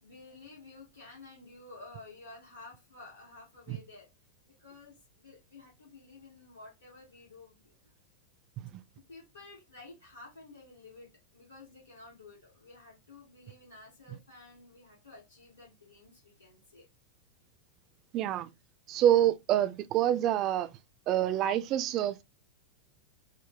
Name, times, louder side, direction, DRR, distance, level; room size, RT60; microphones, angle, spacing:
voice 1, 0.0-4.1 4.5-7.9 9.1-16.9 19.0-19.3, left 3 dB, 75° left, 1.7 m, -52 dB
voice 2, 18.1-18.5 18.9-20.7 21.1-22.2, right 11 dB, 35° right, 0.4 m, -27 dB
4.8 x 2.1 x 3.9 m
figure-of-eight pair, 90°, 0 cm